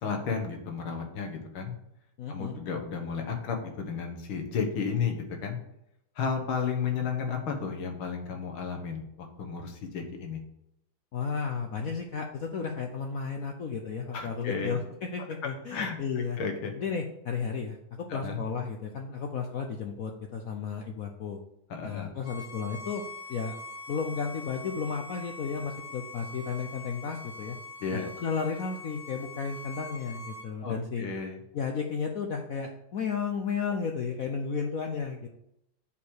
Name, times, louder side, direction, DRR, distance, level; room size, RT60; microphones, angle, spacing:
voice 1, 0.0-1.7 2.3-5.6 6.2-10.4 14.1-14.8 15.7-16.0 16.4-16.7 18.1-18.4 21.7-22.2 27.8-28.1 30.6-31.4, left 6 dB, 75° left, 4 dB, 2.2 m, -33 dB
voice 2, 2.2-2.5 11.1-16.4 16.8-21.4 21.8-23.0 23.3-23.5 23.9-27.6 27.9-31.1 31.5-35.3, left 5 dB, 60° left, 3 dB, 0.9 m, -33 dB
Bowed string instrument, 22.2-30.5, left 2 dB, 30° left, 1.2 m, -43 dB
7.0 x 4.9 x 6.4 m, 0.79 s
omnidirectional pair, 2.3 m